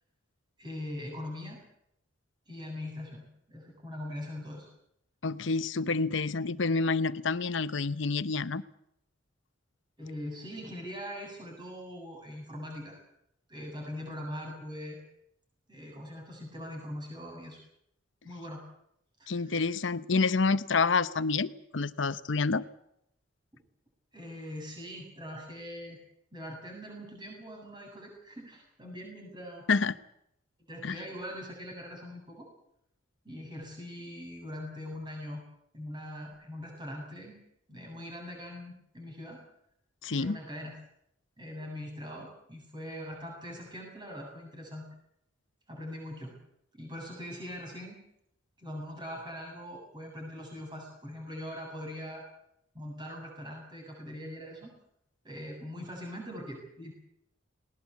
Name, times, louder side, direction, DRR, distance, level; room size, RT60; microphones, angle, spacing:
voice 1, 0.6-1.6 2.5-4.7 10.0-13.0 13.5-15.0 15.7-17.6 18.2-18.6 19.2-19.6 23.5-23.6 24.1-26.0 26.3-29.7 30.7-32.5 33.2-35.4 35.7-37.4 37.7-39.4 40.2-40.7 41.4-44.9 45.7-46.3 46.7-48.0 48.6-52.3 52.7-54.7 55.2-56.9, left 1 dB, 20° right, 1 dB, 7.9 m, -42 dB
voice 2, 5.2-8.6 19.3-22.6 29.7-29.9 30.8-31.0 40.0-40.4, left 4 dB, 65° left, 15 dB, 0.9 m, -28 dB
20.0 x 19.0 x 8.5 m, 0.76 s
head